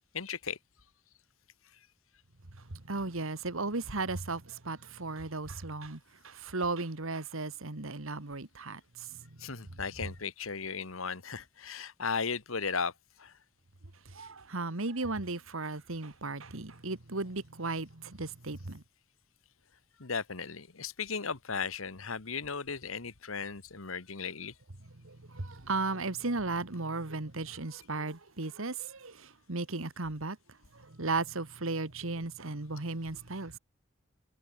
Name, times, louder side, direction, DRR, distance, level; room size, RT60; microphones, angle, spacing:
voice 1, 0.1-0.6 9.4-12.9 13.2-13.3 20.0-24.5, left 5 dB, 75° left, 1.5 m, -36 dB
voice 2, 2.5-9.3 14.1-18.8 25.0-30.4 30.7-33.6, right 3 dB, 75° right, 1.8 m, -36 dB
head